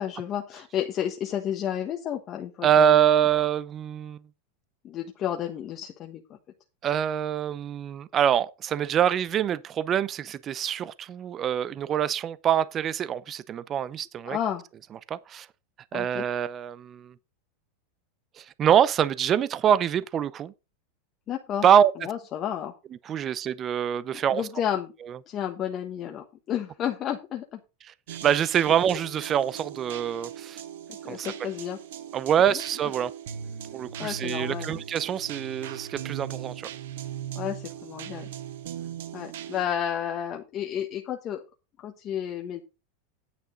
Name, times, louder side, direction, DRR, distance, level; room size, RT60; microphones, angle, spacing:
voice 1, 0.0-3.2 4.8-6.2 14.2-14.6 15.9-16.2 21.3-21.7 22.0-22.7 24.3-24.9 25.3-27.6 30.9-31.8 34.0-34.8 37.3-38.3 39.1-41.4 41.8-42.6, left 10 dB, 35° left, 1.3 m, -31 dB
voice 2, 2.6-4.2 6.8-14.4 15.1-15.5 15.9-17.1 18.4-20.5 21.6-21.9 23.1-24.5 27.9-28.0 28.2-30.6 31.1-31.3 32.1-33.1 33.7-36.7, right 9 dB, 35° right, 0.6 m, -25 dB
sound 1, 28.1-39.7, right 9 dB, 75° right, 1.1 m, -39 dB
9.5 x 8.2 x 3.9 m
hypercardioid pair, 115°, 0 cm